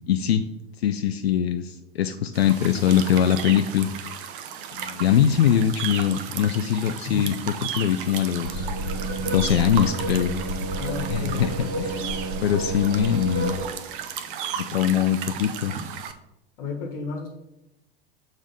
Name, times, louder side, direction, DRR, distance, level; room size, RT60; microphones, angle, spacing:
voice 1, 0.1-0.4 0.8-3.9 4.7-7.4 7.7-8.7 9.3-10.3 11.1-12.0 12.4-13.6 14.6-15.8, left 9 dB, 75° left, 8 dB, 0.5 m, -22 dB
sound 1, 2.3-16.1, right 8 dB, 55° right, 0.8 m, -35 dB
sound 2, 8.4-13.7, right 2 dB, 70° right, 1.8 m, -30 dB
voice 2, 10.8-11.5 16.6-17.3, left 5 dB, 55° left, 1 dB, 1.4 m, -32 dB
6.5 x 3.4 x 5.4 m, 0.95 s
figure-of-eight pair, 85°, 31 cm